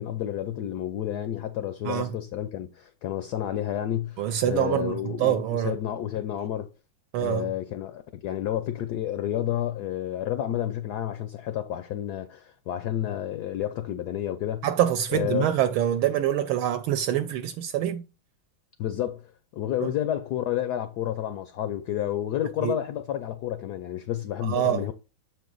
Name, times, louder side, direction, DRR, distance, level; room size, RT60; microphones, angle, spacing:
voice 1, 0.0-6.7 7.2-14.6 15.1-15.5 18.8-19.2 19.5-24.9, left 11 dB, 75° left, 0.9 m, -30 dB
voice 2, 4.2-5.7 7.1-7.5 14.6-18.0 19.8-19.9 22.6-22.7 24.4-24.9, right 11 dB, 80° right, 1.4 m, -25 dB
7.2 x 4.6 x 3.9 m
omnidirectional pair, 2.3 m